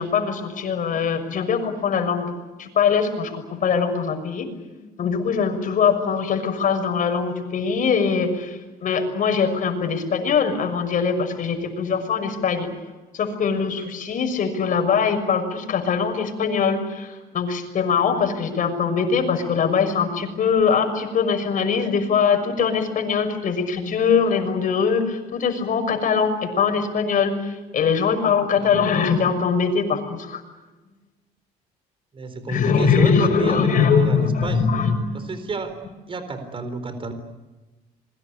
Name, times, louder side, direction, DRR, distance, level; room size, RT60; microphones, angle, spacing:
voice 1, 0.0-12.7 13.1-30.4 32.5-35.2, left 6 dB, 50° left, 6 dB, 6.4 m, -22 dB
voice 2, 32.1-34.7 35.1-35.8 36.1-37.1, right 4 dB, 30° right, 10 dB, 4.1 m, -30 dB
27.5 x 22.5 x 8.5 m, 1.2 s
cardioid pair, 110°, 17 cm